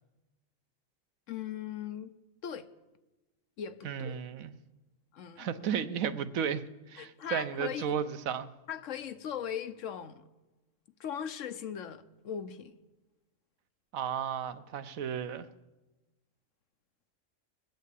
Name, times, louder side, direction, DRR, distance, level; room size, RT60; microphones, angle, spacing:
voice 1, 1.3-2.1 2.4-2.7 3.6-4.3 5.1-5.5 7.0-7.8 8.7-10.2 11.0-12.8, left 9 dB, 70° left, 1.1 m, -39 dB
voice 2, 3.8-4.5 5.4-8.5 13.9-15.5, right 8 dB, 85° right, 1.2 m, -34 dB
20.5 x 8.5 x 8.3 m
omnidirectional pair, 1.4 m